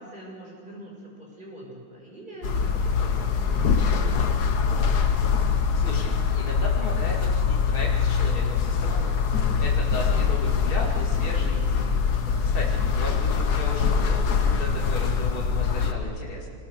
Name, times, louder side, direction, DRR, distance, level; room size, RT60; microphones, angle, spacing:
voice 1, 0.0-4.4 12.2-12.6, right 1 dB, 20° right, -2 dB, 6.3 m, -44 dB
sound 1, 2.4-15.9, left 6 dB, 55° left, 1.7 m, -23 dB
voice 2, 5.7-9.2 9.6-12.0 12.5-12.6 12.9-16.5, left 1 dB, 25° left, -3 dB, 2.8 m, -35 dB
26.0 x 20.5 x 6.7 m, 2.1 s
omnidirectional pair, 2.2 m